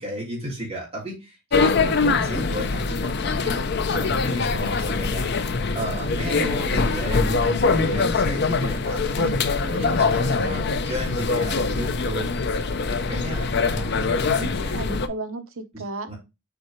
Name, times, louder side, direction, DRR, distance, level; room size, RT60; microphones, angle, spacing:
voice 1, 0.0-3.6 3.9-5.3 5.7-12.3 12.9-14.7 16.0-16.1, right 1 dB, 25° right, 3.3 m, -33 dB
sound 1, 1.5-15.1, left 4 dB, 50° left, 0.6 m, -23 dB
voice 2, 1.8-2.2 14.3-16.1, right 2 dB, 70° right, 0.9 m, -34 dB
6.9 x 4.6 x 3.1 m
head